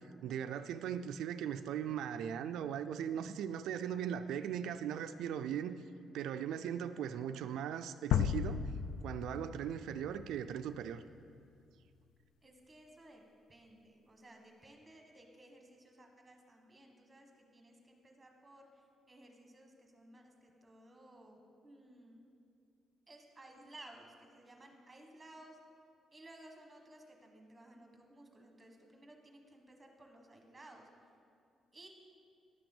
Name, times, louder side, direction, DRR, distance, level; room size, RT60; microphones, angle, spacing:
voice 1, 0.0-5.8 6.1-8.6 9.0-11.0, right 9 dB, 90° right, 9 dB, 0.3 m, -39 dB
sound 1, 8.1-11.0, left 8 dB, 80° left, 0.3 m, -35 dB
voice 2, 12.4-13.2 13.5-22.2 23.1-25.6 26.1-30.9 31.7-31.9, right 1 dB, 10° right, 2 dB, 1.2 m, -57 dB
11.0 x 6.0 x 7.1 m, 2.4 s
cardioid pair, 175°, 0 cm